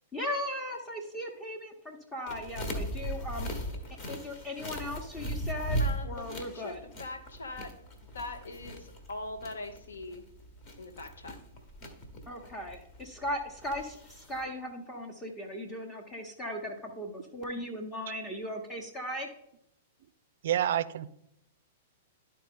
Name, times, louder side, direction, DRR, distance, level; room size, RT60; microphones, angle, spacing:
voice 1, 0.1-3.5 4.1-6.8 12.3-19.3, left 1 dB, 20° left, 1.0 m, -38 dB
sound 1, 2.3-14.4, right 1 dB, 40° left, 1.4 m, -38 dB
voice 2, 5.8-7.7 8.1-10.2 10.8-11.4, left 2 dB, 70° left, 1.0 m, -42 dB
voice 3, 20.4-21.1, right 11 dB, 55° right, 0.4 m, -28 dB
11.5 x 4.2 x 3.7 m
figure-of-eight pair, 100°, 0 cm